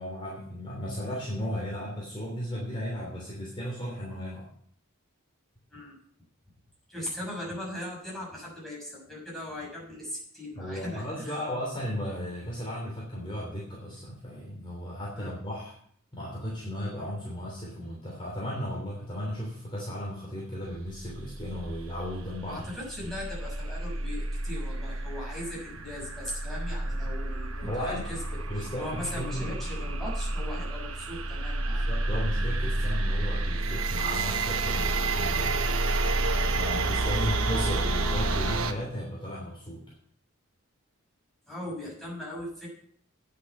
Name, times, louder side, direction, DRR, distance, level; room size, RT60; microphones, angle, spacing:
voice 1, 0.0-4.5 10.6-15.8 16.1-22.6 23.0-23.1 27.6-28.1 28.5-29.5 31.7-35.5 36.5-39.8, equal, 25° left, -4 dB, 3.1 m, -35 dB
voice 2, 6.9-11.4 15.1-15.3 22.4-31.9 37.0-37.5 41.5-42.7, left 1 dB, ahead, -5 dB, 6.2 m, -39 dB
sound 1, 21.1-38.7, right 2 dB, 70° right, 1.1 m, -30 dB
9.7 x 8.4 x 7.1 m, 0.63 s
head